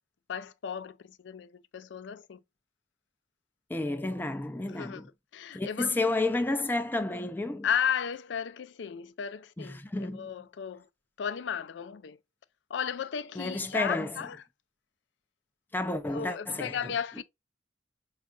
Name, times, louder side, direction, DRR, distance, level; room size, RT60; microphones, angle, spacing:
voice 1, 0.3-2.4 4.7-5.1 5.3-6.0 7.6-10.9 11.2-12.2 12.7-14.4 16.0-17.2, left 8 dB, 80° left, 0.4 m, -34 dB
voice 2, 3.7-5.0 5.5-7.7 9.6-10.3 13.4-14.1 15.7-16.9, left 2 dB, 10° left, 0.3 m, -31 dB
5.2 x 2.4 x 2.3 m
head